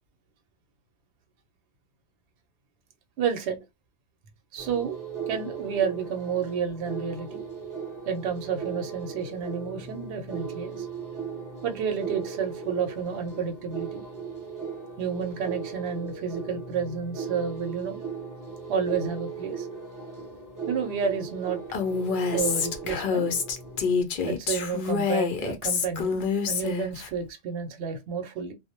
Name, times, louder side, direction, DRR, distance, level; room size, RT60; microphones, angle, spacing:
voice 1, 3.2-3.6 4.5-5.0 5.3-7.4 8.1-10.9 11.6-14.0 15.0-18.0 18.7-19.7 20.7-21.6 22.3-23.3 24.2-28.5, right 6 dB, 70° right, 0.9 m, -30 dB
sound 1, 4.6-24.0, right 5 dB, 25° right, 0.5 m, -37 dB
Female speech woman speaking, 21.7-27.1, left 5 dB, 60° left, 0.6 m, -27 dB
2.2 x 2.0 x 2.7 m
omnidirectional pair, 1.2 m